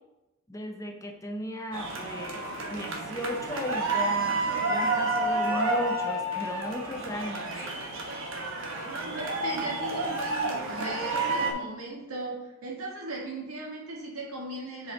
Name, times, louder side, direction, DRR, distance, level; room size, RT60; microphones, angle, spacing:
voice 1, 0.5-2.4 2.7-7.6, left 1 dB, 15° left, 3 dB, 0.5 m, -36 dB
sound 1, 1.7-11.5, right 2 dB, 65° right, 1.3 m, -30 dB
voice 2, 8.8-14.9, right 2 dB, 80° right, -3 dB, 1.7 m, -38 dB
7.8 x 5.1 x 3.9 m, 0.99 s
head